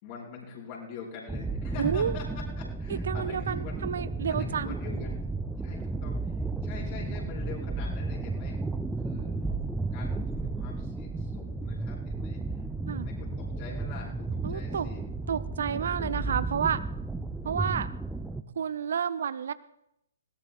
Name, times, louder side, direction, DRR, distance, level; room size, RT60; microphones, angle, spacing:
voice 1, 0.0-2.2 2.6-3.9 4.3-5.2 5.6-8.6 9.0-9.3 9.9-15.0, left 5 dB, 35° left, -2 dB, 4.3 m, -44 dB
sound 1, 1.3-18.4, right 3 dB, 5° right, 0.5 m, -33 dB
voice 2, 1.8-2.2 3.0-4.8 12.9-13.1 14.4-14.9 15.3-16.8 17.4-17.9 18.6-19.5, right 7 dB, 60° right, 16 dB, 0.4 m, -30 dB
21.0 x 17.5 x 2.3 m, 0.81 s
figure-of-eight pair, 120°, 0 cm